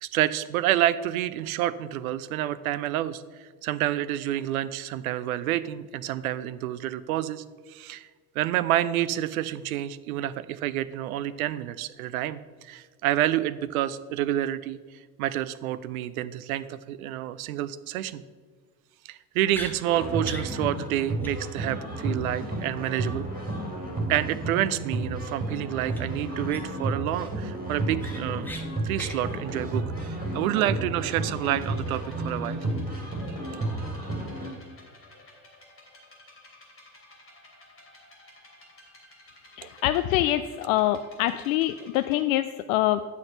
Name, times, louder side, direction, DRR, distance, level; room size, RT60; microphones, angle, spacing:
voice 1, 0.0-3.2 3.6-8.1 8.4-14.8 15.2-18.2 19.0-23.3 24.1-32.6 39.6-39.7, right 13 dB, 65° right, 15 dB, 0.6 m, -28 dB
sound 1, 19.5-19.7 20.2-20.5 20.8-20.9 21.2-21.3 21.6-21.7 25.9-26.0 26.5-26.9 27.3-27.4 27.7-28.6 28.9-29.2, left 1 dB, 5° left, 1.4 m, -38 dB
sound 2, 19.8-34.5, right 1 dB, 20° right, 2.8 m, -32 dB
sound 3, 31.1-42.2, left 1 dB, 30° left, 3.0 m, -53 dB
voice 2, 39.6-43.0, left 14 dB, 60° left, 12 dB, 0.5 m, -25 dB
9.7 x 6.4 x 5.5 m, 1.5 s
figure-of-eight pair, 55°, 46 cm